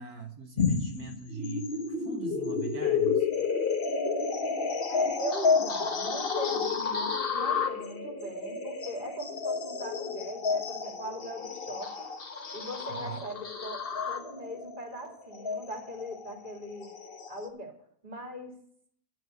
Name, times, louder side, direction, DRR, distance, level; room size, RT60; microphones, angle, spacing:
voice 1, 0.0-3.3 12.9-13.2, right 6 dB, 75° right, 3 dB, 1.6 m, -41 dB
sound 1, 0.6-17.5, left 5 dB, 40° left, 1.2 m, -31 dB
voice 2, 4.9-12.1 12.5-16.9 17.3-17.7 18.0-18.6, right 1 dB, 30° right, 2 dB, 2.9 m, -40 dB
11.0 x 6.8 x 8.1 m, 0.63 s
omnidirectional pair, 1.6 m